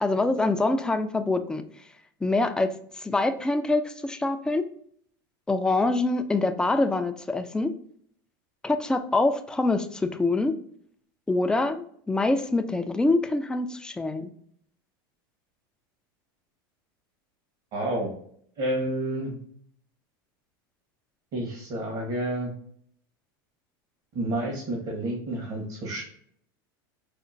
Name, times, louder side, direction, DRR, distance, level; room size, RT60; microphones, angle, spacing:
voice 1, 0.0-1.6 2.2-2.7 3.0-4.6 5.5-7.7 8.6-10.5 11.3-14.3, left 2 dB, 5° left, 7 dB, 0.3 m, -25 dB
voice 2, 17.7-18.1 18.6-19.4 21.3-22.5 24.1-26.0, right 1 dB, 55° right, -1 dB, 1.3 m, -29 dB
4.9 x 2.1 x 2.5 m, 0.63 s
supercardioid pair, 115°, 12 cm